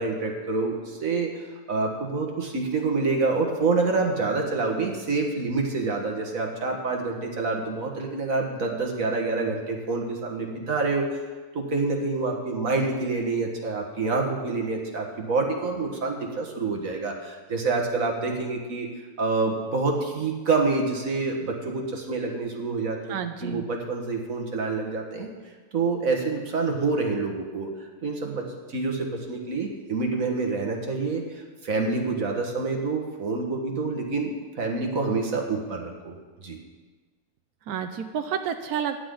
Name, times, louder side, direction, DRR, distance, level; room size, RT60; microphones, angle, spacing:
voice 1, 0.0-11.2 11.5-18.9 19.2-25.3 25.7-27.7 28.0-34.3 34.6-36.2 36.4-36.6, right 3 dB, 65° right, 1 dB, 2.1 m, -27 dB
voice 2, 23.1-23.6 37.7-39.0, right 8 dB, 85° right, 7 dB, 1.2 m, -30 dB
15.5 x 10.5 x 3.9 m, 1.3 s
omnidirectional pair, 1.6 m